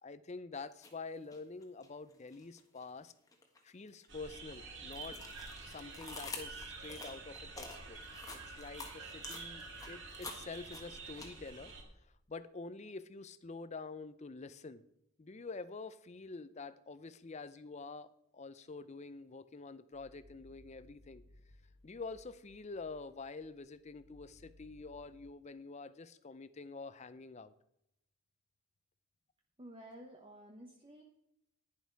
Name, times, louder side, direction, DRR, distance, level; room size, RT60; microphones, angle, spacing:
voice 1, 0.0-3.1 3.6-5.2 5.6-8.0 8.5-11.7 12.3-14.8 15.2-18.1 18.3-21.2 21.8-27.5, left 3 dB, 30° left, 15 dB, 0.5 m, -47 dB
sound 1, 0.7-0.9 1.3-2.8 3.3-11.7, left 3 dB, 15° left, 1.4 m, -48 dB
sound 2, 4.1-11.8, right 4 dB, 55° right, 2.2 m, -48 dB
sound 3, 19.9-25.3, left 1 dB, 75° left, 1.7 m, -63 dB
voice 2, 29.6-31.0, right 1 dB, 25° right, 1 dB, 1.0 m, -52 dB
11.0 x 10.5 x 4.6 m, 0.82 s
head